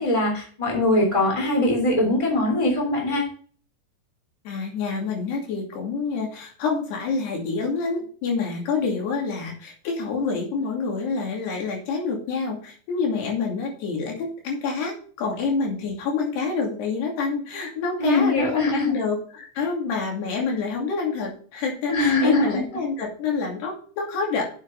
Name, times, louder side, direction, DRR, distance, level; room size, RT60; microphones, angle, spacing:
voice 1, 0.0-3.2 18.0-18.9 21.9-22.6, left 1 dB, 10° left, 0 dB, 3.0 m, -22 dB
voice 2, 4.5-24.4, left 4 dB, 80° left, 0 dB, 4.6 m, -27 dB
7.9 x 7.7 x 5.3 m, 0.43 s
omnidirectional pair, 4.7 m